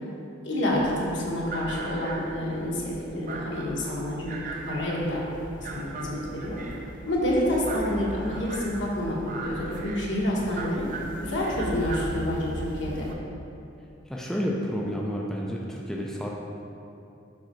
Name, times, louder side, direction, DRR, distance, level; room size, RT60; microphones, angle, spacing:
voice 1, 0.4-4.4 4.6-5.2 5.5-6.6 7.0-10.8 11.2-13.1, left 1 dB, 70° left, -4 dB, 1.2 m, -28 dB
sound 1, 0.7-13.1, right 2 dB, 45° right, 0.5 m, -38 dB
voice 2, 14.1-16.3, equal, 5° left, -3 dB, 0.4 m, -30 dB
5.5 x 4.8 x 4.5 m, 2.7 s
head